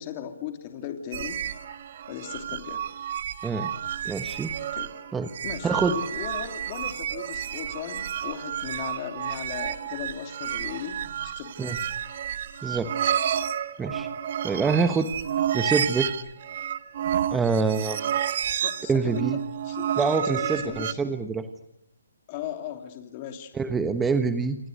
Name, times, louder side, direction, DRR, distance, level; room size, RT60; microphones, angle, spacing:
voice 1, 0.0-1.4 2.1-2.8 4.7-4.9 5.4-11.7 18.6-19.2 19.6-19.9 20.2-21.0 22.3-23.5, left 9 dB, 30° left, 6 dB, 2.8 m, -37 dB
sound 1, 1.1-20.9, right 9 dB, 45° right, 1.5 m, -31 dB
voice 2, 4.0-4.5 5.1-5.3 5.6-6.0 11.6-11.8 12.6-13.1 13.8-14.1 14.4-15.1 15.5-16.1 17.3-18.1 18.9-19.4 20.0-21.5 23.5-24.6, right 4 dB, 10° right, 9 dB, 1.2 m, -25 dB
28.5 x 27.5 x 6.6 m, 0.77 s
hypercardioid pair, 155°, 0 cm